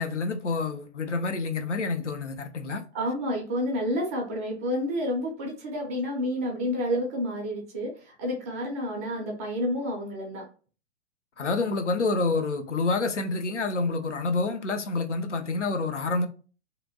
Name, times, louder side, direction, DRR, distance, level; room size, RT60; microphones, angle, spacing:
voice 1, 0.0-2.8 11.4-16.3, left 3 dB, 85° left, 0.5 m, -28 dB
voice 2, 2.9-10.5, equal, 15° right, 0.3 m, -29 dB
2.8 x 2.6 x 2.7 m
figure-of-eight pair, 110°, 35 cm